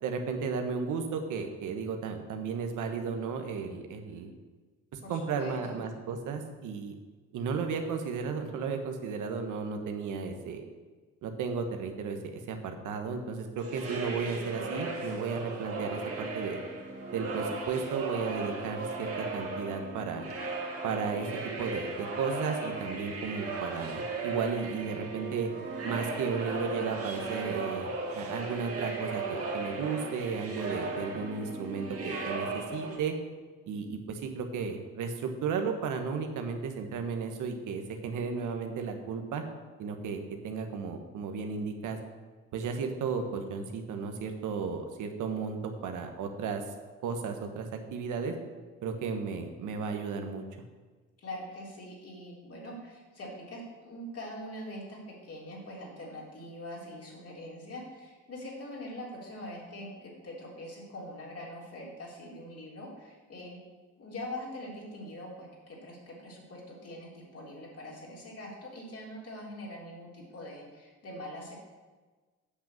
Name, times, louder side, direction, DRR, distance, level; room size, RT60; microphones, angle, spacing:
voice 1, 0.0-4.3 4.9-6.9 7.3-10.6 11.2-16.6 17.1-20.3 20.8-21.3 21.6-25.5 25.8-33.1 33.7-39.4 39.8-42.0 42.5-46.6 47.0-48.3 48.8-50.4, right 5 dB, 80° right, 5 dB, 1.3 m, -34 dB
voice 2, 5.0-5.8 51.2-63.6 64.0-71.5, left 1 dB, 50° left, -3 dB, 3.7 m, -43 dB
sound 1, 13.6-33.0, right 3 dB, 50° right, 2.0 m, -36 dB
8.2 x 6.1 x 7.6 m, 1.3 s
cardioid pair, 90°, 30 cm